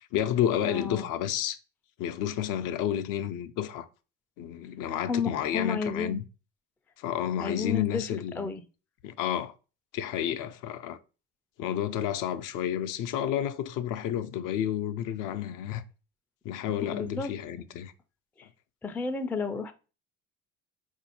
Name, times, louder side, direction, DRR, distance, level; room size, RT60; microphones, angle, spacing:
voice 1, 0.1-1.6 2.0-3.9 4.4-6.2 7.0-8.5 9.0-9.5 9.9-11.0 11.6-15.8 16.4-17.9, left 10 dB, 60° left, 0.5 m, -30 dB
voice 2, 0.6-1.1 5.1-6.2 7.4-8.0 8.4-8.6 16.8-17.3 18.8-19.7, left 5 dB, 5° left, 0.3 m, -32 dB
3.9 x 2.6 x 2.8 m
hypercardioid pair, 65°, 36 cm